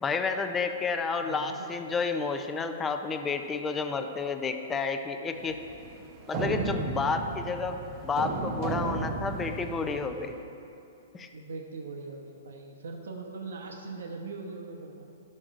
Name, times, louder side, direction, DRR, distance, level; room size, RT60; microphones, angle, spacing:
voice 1, 0.0-5.6 6.3-10.3 11.1-11.3, left 4 dB, 10° left, 7 dB, 0.4 m, -31 dB
voice 2, 1.2-1.7 11.3-15.1, right 3 dB, 85° right, 2 dB, 0.8 m, -40 dB
sound 1, 5.4-10.2, right 3 dB, 35° right, 0.8 m, -34 dB
12.5 x 6.4 x 2.5 m, 2.7 s
hypercardioid pair, 160°, 0 cm